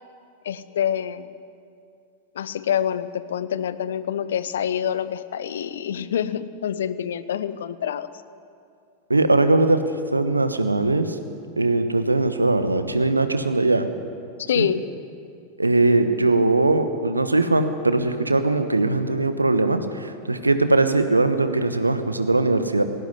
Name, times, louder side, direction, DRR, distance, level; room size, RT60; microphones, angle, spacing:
voice 1, 0.4-1.3 2.3-8.1 14.5-14.9, left 9 dB, 60° left, 15 dB, 0.8 m, -26 dB
voice 2, 9.1-9.8 10.1-11.2 11.6-13.9 14.6-14.7 15.6-22.8, right 2 dB, 80° right, 10 dB, 1.3 m, -20 dB
18.0 x 16.5 x 9.6 m, 2.4 s
figure-of-eight pair, 90°, 0 cm